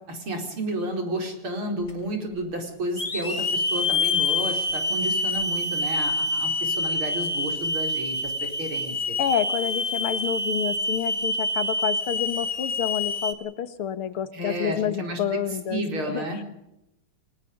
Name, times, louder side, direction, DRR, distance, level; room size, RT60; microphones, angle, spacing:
voice 1, 0.1-9.2 14.3-15.2 15.7-16.4, right 1 dB, 75° right, 3 dB, 5.3 m, -31 dB
Hiss / Alarm, 1.9-2.0 3.0-13.3, left 2 dB, 25° left, 1.7 m, -26 dB
voice 2, 9.2-16.4, left 9 dB, 85° left, 12 dB, 2.3 m, -29 dB
30.0 x 18.5 x 5.3 m, 0.84 s
omnidirectional pair, 2.3 m